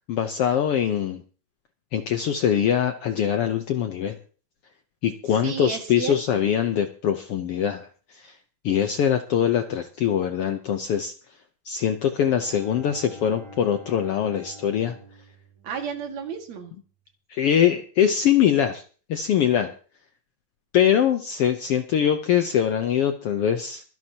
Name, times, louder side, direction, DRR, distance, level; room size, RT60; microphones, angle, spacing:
voice 1, 0.1-1.2 1.9-4.2 5.0-7.9 8.1-8.3 8.6-11.1 11.6-14.9 17.3-18.8 19.1-19.7 20.7-23.8, left 9 dB, 70° left, 7 dB, 1.4 m, -23 dB
voice 2, 5.4-6.5 15.6-16.7, right 6 dB, 65° right, 4 dB, 3.1 m, -32 dB
Bowed string instrument, 12.1-16.4, equal, 40° right, 6.9 m, -46 dB
24.0 x 11.0 x 2.9 m, 0.39 s
omnidirectional pair, 3.5 m